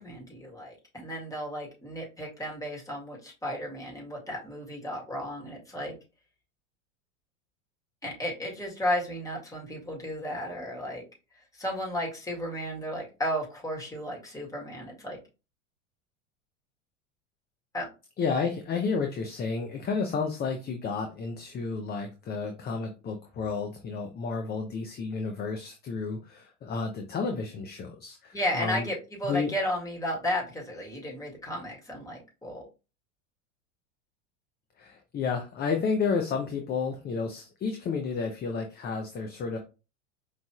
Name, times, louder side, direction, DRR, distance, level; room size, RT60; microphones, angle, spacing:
voice 1, 0.0-5.9 8.0-11.0 11.5-15.2 17.7-17.9 28.3-32.7, equal, 10° left, -2 dB, 2.0 m, -33 dB
voice 2, 18.2-28.9 29.3-29.5 34.8-39.6, left 5 dB, 25° left, 4 dB, 0.7 m, -31 dB
5.1 x 3.2 x 2.3 m, 0.30 s
hypercardioid pair, 105°, 38 cm